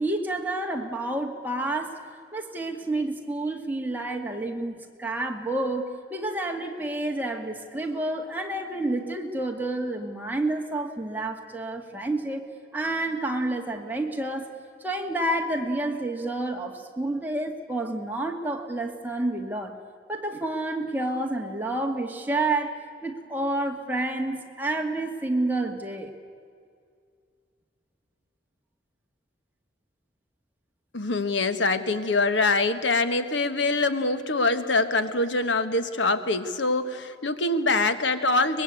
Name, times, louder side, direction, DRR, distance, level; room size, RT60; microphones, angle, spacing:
voice 1, 0.0-2.0 2.3-12.5 12.7-14.5 14.8-19.7 20.1-26.1, right 2 dB, 10° right, 2 dB, 2.0 m, -29 dB
voice 2, 30.9-38.6, left 3 dB, 85° left, 10 dB, 1.4 m, -24 dB
24.0 x 21.5 x 8.4 m, 2.2 s
head